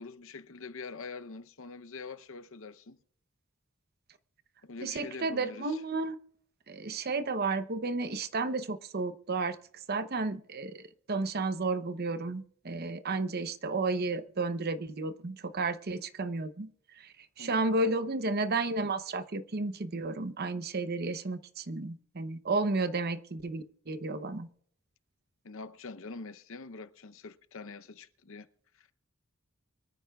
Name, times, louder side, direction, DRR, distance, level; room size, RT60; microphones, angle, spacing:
voice 1, 0.0-3.0 4.6-5.8 17.4-17.7 25.4-28.5 28.8-28.9, left 4 dB, 65° left, 0.7 m, -44 dB
voice 2, 4.8-6.2 6.7-9.6 9.9-10.8 11.1-16.7 17.0-24.5, right 3 dB, 45° right, 0.8 m, -32 dB
24.5 x 13.5 x 2.3 m
head